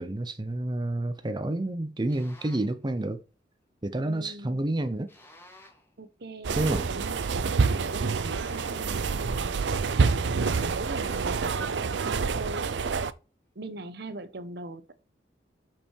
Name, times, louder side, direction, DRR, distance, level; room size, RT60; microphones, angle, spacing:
voice 1, 0.0-3.2 3.8-5.1 6.6-6.9, right 1 dB, 25° right, 0.7 m, -29 dB
sound 1, 2.1-2.8 5.1-5.9 8.1-9.0 11.0-11.9, left 1 dB, 15° left, 2.0 m, -52 dB
voice 2, 4.0-4.6 6.0-6.6 6.9-9.6 9.9-13.0 13.5-14.9, right 2 dB, 65° right, 0.9 m, -41 dB
sound 2, 6.4-13.1, right 4 dB, 85° right, 0.5 m, -27 dB
6.5 x 6.1 x 4.5 m
head